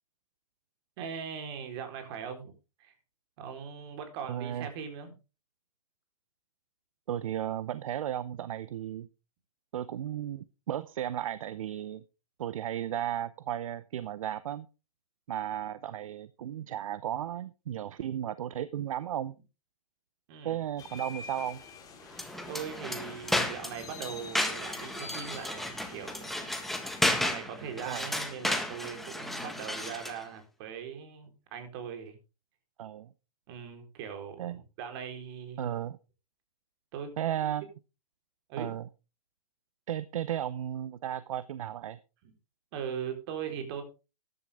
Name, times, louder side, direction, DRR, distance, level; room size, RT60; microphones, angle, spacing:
voice 1, 1.0-2.5 2.8-2.9 3.4-5.1 20.3-20.6 22.5-26.5 27.2-32.2 33.5-35.7 36.9-37.1 38.5-38.7 42.2-42.3 42.7-43.8, right 7 dB, 45° right, 6 dB, 4.2 m, -40 dB
voice 2, 4.2-4.7 7.1-9.1 9.7-12.0 12.4-14.7 15.3-19.3 20.4-21.6 27.8-28.1 32.8-33.1 34.4-34.6 35.6-36.0 37.2-37.6 38.6-38.9 39.9-42.0, right 11 dB, 65° right, 17 dB, 0.7 m, -34 dB
sound 1, 20.8-27.0, left 4 dB, 20° left, 3.8 m, -47 dB
sound 2, 22.1-30.2, left 1 dB, ahead, 1.7 m, -33 dB
13.5 x 11.0 x 3.6 m, 0.30 s
hypercardioid pair, 130°, 19 cm